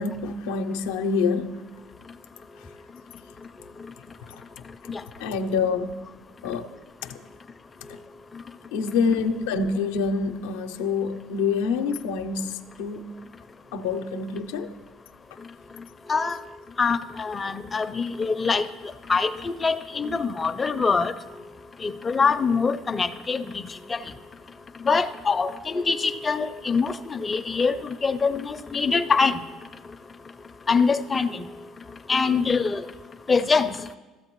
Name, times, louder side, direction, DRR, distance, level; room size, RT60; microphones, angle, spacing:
voice 1, 0.0-1.6 5.2-6.1 6.4-6.7 7.0-7.2 7.9-8.0 8.7-13.2 13.7-14.7, left 5 dB, 90° left, 7 dB, 0.5 m, -26 dB
voice 2, 16.8-18.7 19.1-21.1 21.8-23.4 23.9-24.0 24.9-29.4 30.7-31.4 32.1-32.8 33.3-33.7, left 5 dB, 25° left, 9 dB, 0.4 m, -24 dB
13.5 x 7.7 x 3.0 m, 1.2 s
supercardioid pair, 85°, 0 cm